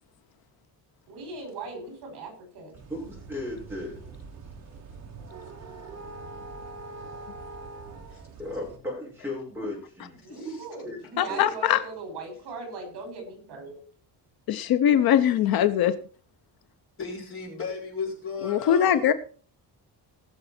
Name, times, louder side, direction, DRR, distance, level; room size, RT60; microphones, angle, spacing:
voice 1, 1.1-2.7 10.2-13.8, right 3 dB, 65° right, 3 dB, 5.6 m, -39 dB
sound 1, 2.7-8.8, right 3 dB, 40° right, 1.7 m, -43 dB
voice 2, 2.9-4.0 7.8-7.9 8.4-10.2 10.4-10.6 10.8-11.0 11.3-11.4, left 1 dB, 5° right, -3 dB, 5.5 m, -35 dB
voice 3, 10.2-10.6 17.0-19.1, left 4 dB, 30° left, -2 dB, 4.3 m, -35 dB
voice 4, 11.2-11.8 14.5-15.9 18.4-19.1, left 10 dB, 60° left, 12 dB, 0.8 m, -21 dB
19.0 x 6.7 x 4.3 m, 0.41 s
cardioid pair, 180°, 41 cm